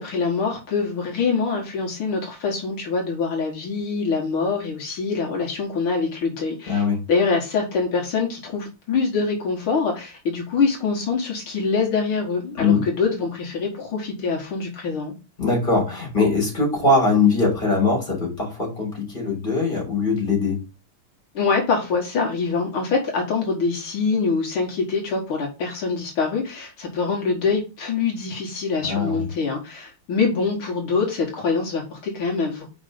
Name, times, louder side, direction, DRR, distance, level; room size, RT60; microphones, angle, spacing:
voice 1, 0.0-15.1 21.3-32.7, left 4 dB, 75° left, 0 dB, 2.4 m, -24 dB
voice 2, 6.7-7.0 12.6-12.8 15.4-20.6 28.8-29.3, left 3 dB, 20° left, 0 dB, 3.9 m, -21 dB
5.3 x 5.2 x 5.1 m, 0.30 s
omnidirectional pair, 2.4 m